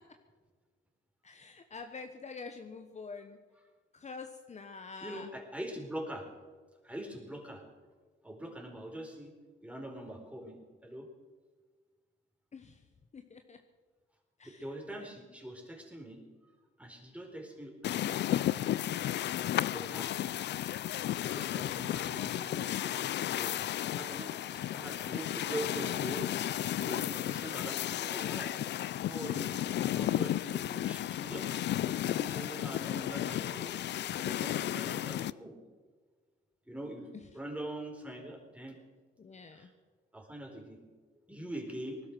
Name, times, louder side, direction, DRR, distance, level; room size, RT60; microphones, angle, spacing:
voice 1, 1.2-3.4 3.9-5.3 12.5-12.8 13.1-13.6 14.4-14.7 15.0-15.1 21.5-21.8 26.8-27.3 37.1-37.2 39.2-39.7, left 4 dB, 35° left, 6 dB, 1.2 m, -47 dB
voice 2, 5.0-6.3 6.8-7.6 8.2-9.3 9.6-11.1 14.4-16.2 16.8-18.2 19.6-20.1 21.2-23.0 23.3-23.6 23.9-28.6 29.1-29.6 29.9-31.5 31.8-33.8 34.2-35.5 36.7-37.1 37.3-38.8 39.5-39.7 40.1-40.8 41.3-42.0, right 1 dB, 5° right, 2 dB, 4.4 m, -43 dB
sound 1, 17.8-35.3, left 12 dB, 60° left, 0.5 m, -33 dB
19.0 x 12.0 x 6.3 m, 1.5 s
cardioid pair, 90°, 20 cm